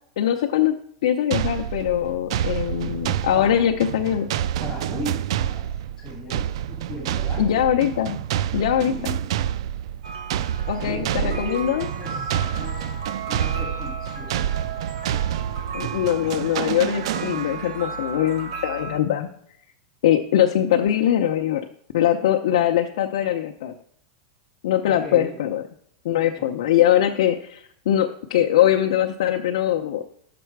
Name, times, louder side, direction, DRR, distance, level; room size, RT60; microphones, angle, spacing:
voice 1, 0.2-0.7 1.0-4.3 7.4-8.2 8.5-8.9 10.7-11.9 15.7-19.3 20.0-21.6 21.9-23.7 24.6-25.6 26.0-30.1, left 11 dB, 75° left, 3 dB, 0.7 m, -22 dB
sound 1, 1.3-17.8, right 10 dB, 65° right, 0.3 m, -28 dB
voice 2, 3.3-3.6 4.6-7.5 8.8-9.3 10.7-13.0 13.3-14.4 24.8-25.4 26.4-26.5, left 2 dB, 20° left, -2 dB, 2.9 m, -37 dB
sound 2, 10.0-19.0, right 5 dB, 85° right, 1.9 m, -35 dB
11.0 x 6.9 x 4.7 m, 0.67 s
supercardioid pair, 160°, 3 cm